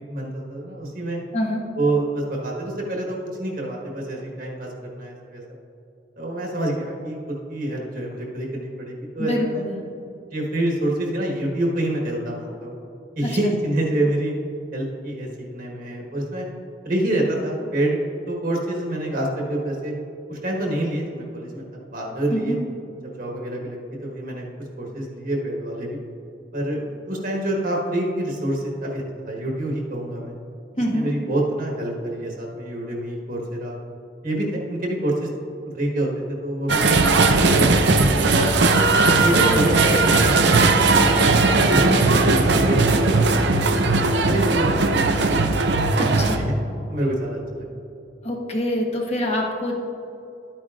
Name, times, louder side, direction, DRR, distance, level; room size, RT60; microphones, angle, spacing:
voice 1, 0.0-1.2 1.8-5.4 6.2-7.2 7.5-9.7 10.3-12.8 13.2-14.3 14.7-16.5 16.8-18.0 18.3-19.9 20.3-22.6 23.0-24.4 24.8-26.0 26.5-30.3 30.8-33.8 34.2-35.3 35.6-36.9 37.4-38.5 39.2-40.0 40.2-41.1 41.5-43.8 44.2-46.5 46.9-47.7, right 1 dB, 50° right, -1 dB, 1.4 m, -27 dB
voice 2, 9.2-9.8 13.2-13.5 22.3-22.6 30.8-31.1 46.0-46.5 48.2-49.7, equal, 35° left, 0 dB, 1.2 m, -25 dB
sound 1, 36.7-46.4, right 3 dB, 80° right, 0.7 m, -18 dB
12.0 x 9.1 x 2.5 m, 2.8 s
head